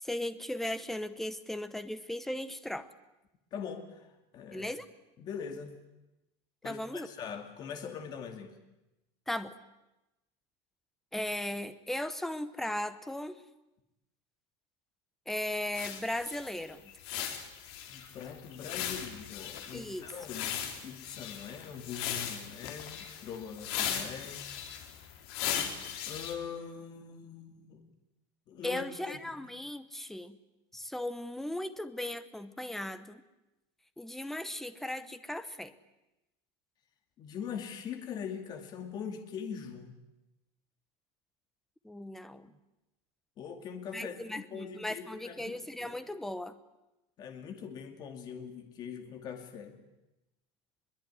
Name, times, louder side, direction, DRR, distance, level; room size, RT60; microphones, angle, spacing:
voice 1, 0.0-2.9 4.5-4.8 6.6-7.1 9.3-9.5 11.1-13.4 15.3-16.9 19.7-20.1 28.6-30.4 30.7-33.2 34.0-35.7 41.8-42.5 43.9-46.5, left 1 dB, ahead, 12 dB, 0.9 m, -37 dB
voice 2, 3.5-4.7 5.2-5.8 6.6-8.5 17.9-20.5 20.8-24.5 26.1-27.8 28.5-29.2 37.2-40.0 43.4-46.0 47.2-49.8, left 7 dB, 30° left, 6 dB, 2.3 m, -42 dB
sound 1, 15.7-26.3, left 9 dB, 60° left, 3.7 m, -38 dB
22.5 x 22.5 x 9.9 m, 0.95 s
supercardioid pair, 175°, 14 cm